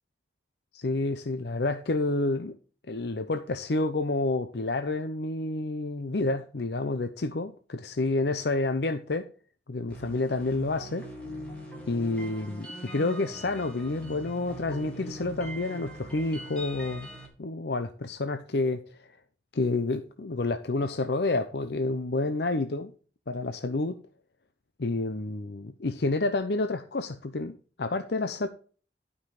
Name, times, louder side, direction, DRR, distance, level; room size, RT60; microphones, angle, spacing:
voice 1, 0.7-2.6 2.9-9.3 9.7-11.1 11.9-17.1 17.4-19.1 19.5-22.9 23.3-24.0 24.8-28.5, left 2 dB, 70° left, 0.7 m, -29 dB
sound 1, 9.9-17.3, right 1 dB, 5° left, 3.7 m, -42 dB
12.0 x 5.6 x 4.8 m
head